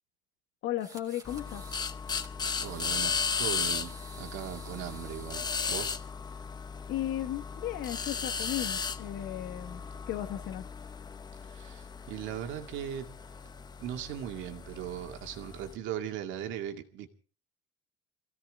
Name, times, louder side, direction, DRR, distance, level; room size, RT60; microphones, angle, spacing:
voice 1, 0.6-1.6 6.9-10.6, left 12 dB, 60° left, 7 dB, 1.7 m, -35 dB
sound 1, 0.8-1.8 2.1-5.7, right 4 dB, 15° right, 2.5 m, -51 dB
sound 2, 1.3-15.7, left 5 dB, 20° left, 0.7 m, -36 dB
voice 2, 2.6-6.0 11.5-13.1 13.8-17.1, right 10 dB, 70° right, 5 dB, 2.3 m, -39 dB
23.5 x 16.5 x 3.7 m, 0.38 s
cardioid pair, 155°, 21 cm